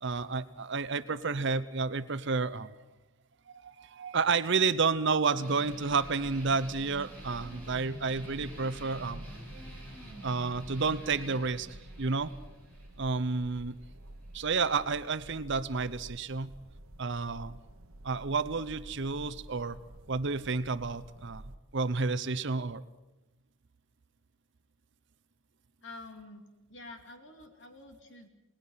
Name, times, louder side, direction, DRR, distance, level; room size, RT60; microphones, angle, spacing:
voice 1, 0.0-2.8 3.5-9.2 10.2-12.3 13.0-13.8 14.3-16.5 17.0-17.6 18.0-19.8 20.1-21.4 21.7-22.8, right 4 dB, 55° right, 13 dB, 0.7 m, -30 dB
sound 1, 5.3-14.4, right 1 dB, 5° left, 7.9 m, -49 dB
sound 2, 5.6-21.6, right 1 dB, 70° right, 1.2 m, -50 dB
voice 2, 25.8-28.3, left 2 dB, 55° left, 5 dB, 2.8 m, -48 dB
29.0 x 19.0 x 5.7 m, 1.1 s
head